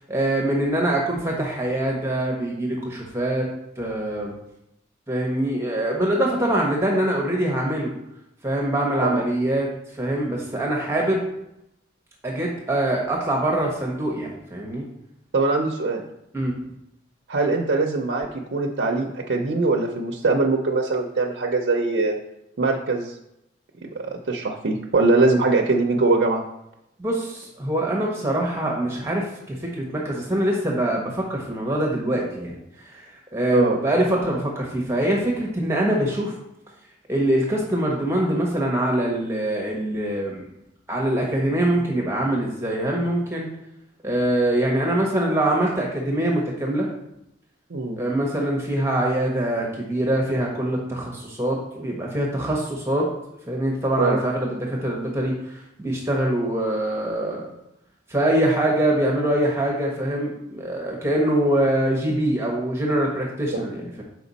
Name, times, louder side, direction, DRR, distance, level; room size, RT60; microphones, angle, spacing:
voice 1, 0.1-3.5 3.8-4.3 5.1-7.9 8.4-9.7 10.0-11.2 12.2-14.9 16.3-16.6 27.0-33.1 33.3-36.3 37.1-40.5 40.9-43.5 44.0-46.9 48.0-53.1 53.5-57.5 58.1-64.0, right 1 dB, 15° right, -1 dB, 0.9 m, -24 dB
voice 2, 15.3-16.0 17.3-22.2 22.6-23.1 23.8-26.4 33.5-33.8 47.7-48.0 54.0-54.2 63.5-63.6, right 3 dB, 75° right, 1 dB, 0.6 m, -22 dB
5.9 x 4.6 x 4.0 m, 0.83 s
head